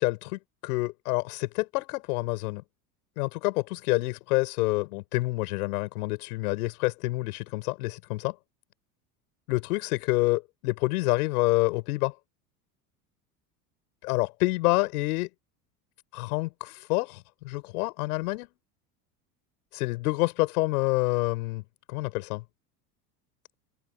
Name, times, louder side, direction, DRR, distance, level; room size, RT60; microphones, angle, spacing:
voice 1, 0.0-2.6 3.2-8.3 9.5-12.1 14.0-15.3 16.1-18.5 19.7-21.6 21.9-22.4, left 22 dB, 75° left, 6.7 m, -27 dB
open air
hypercardioid pair, 85°, 45 cm